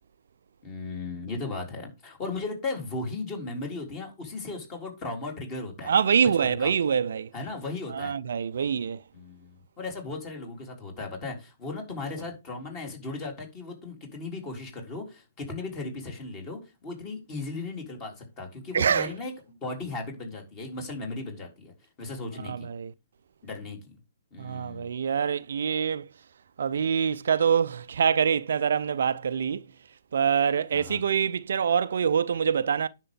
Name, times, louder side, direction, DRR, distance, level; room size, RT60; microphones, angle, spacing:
voice 1, 0.6-5.9 6.2-6.7 7.3-8.1 9.1-21.7 22.0-22.7 23.4-23.9 24.3-24.9 30.7-31.0, left 3 dB, 25° left, 3.6 m, -36 dB
voice 2, 5.9-7.3 7.9-9.0 18.7-19.1 22.5-22.9 24.4-26.1 26.6-29.6 30.1-32.9, right 7 dB, 55° right, 0.5 m, -25 dB
10.0 x 6.6 x 3.6 m
figure-of-eight pair, 130°, 0 cm